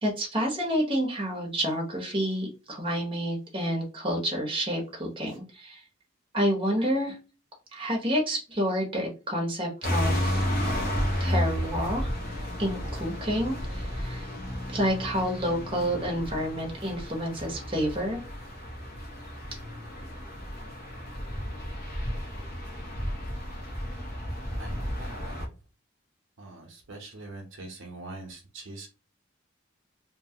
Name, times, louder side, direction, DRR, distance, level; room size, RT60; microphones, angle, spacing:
voice 1, 0.0-5.8 6.3-7.2 7.7-10.4 11.2-12.1 12.6-14.3 14.7-18.2, equal, 25° right, 0 dB, 1.0 m, -29 dB
sound 1, 9.8-25.5, equal, 50° left, 0.8 m, -32 dB
voice 2, 24.6-25.5 26.4-28.9, right 2 dB, 75° right, 1 dB, 0.8 m, -43 dB
2.9 x 2.3 x 2.8 m, 0.31 s
head